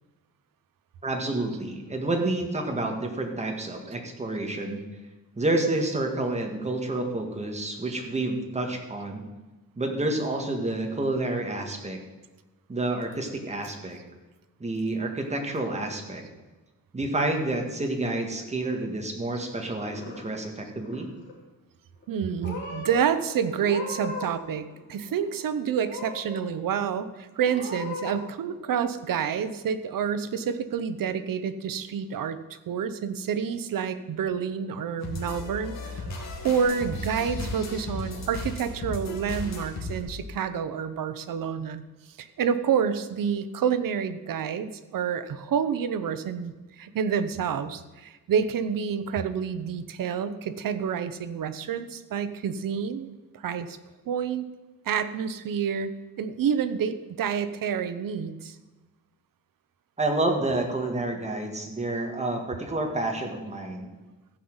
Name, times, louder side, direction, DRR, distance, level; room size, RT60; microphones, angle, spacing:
voice 1, 1.0-4.8 5.4-9.2 9.8-12.0 12.7-14.0 14.6-16.2 16.9-21.1 60.0-63.9, right 2 dB, 20° right, 3 dB, 1.7 m, -29 dB
Purr / Meow, 19.6-20.5 20.8-21.4 22.0-22.2 22.4-23.0 23.6-24.4 24.7-25.4 25.8-26.4 26.9-27.0 27.5-28.2, left 3 dB, 35° left, 3.5 m, -38 dB
voice 2, 22.1-41.8 42.2-53.1 53.3-53.8 54.1-54.5 54.9-58.6, right 7 dB, 75° right, 11 dB, 0.9 m, -28 dB
sound 1, 35.0-40.0, left 2 dB, 50° left, 2.4 m, -35 dB
15.0 x 5.6 x 7.9 m, 1.2 s
wide cardioid pair, 160°, 34 cm